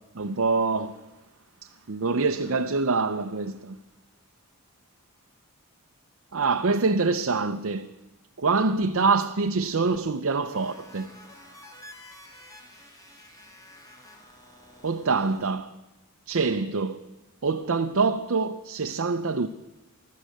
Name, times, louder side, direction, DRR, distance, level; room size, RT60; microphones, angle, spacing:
voice 1, 0.2-0.9 1.9-3.8 6.3-7.9 8.4-11.1 14.8-15.7 16.3-17.0 17.4-19.5, right 4 dB, 65° right, 0.6 m, -25 dB
sound 1, 10.5-15.5, left 1 dB, 15° left, 2.3 m, -49 dB
15.5 x 12.5 x 6.6 m
head